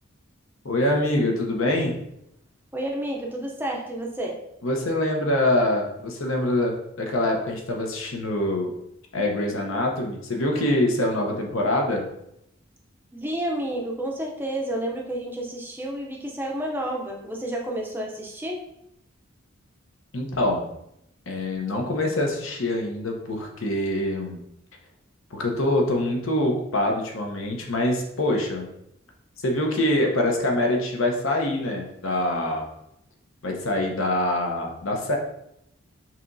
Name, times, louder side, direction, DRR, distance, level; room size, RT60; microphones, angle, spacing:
voice 1, 0.6-2.0 4.6-8.7 9.1-12.1 20.1-20.7 21.3-24.4 25.3-28.7 29.4-32.7 33.4-35.2, left 1 dB, 75° left, 1 dB, 0.9 m, -24 dB
voice 2, 2.7-4.4 13.1-18.6, right 1 dB, 10° right, -1 dB, 0.5 m, -30 dB
5.8 x 3.0 x 2.6 m, 0.79 s
head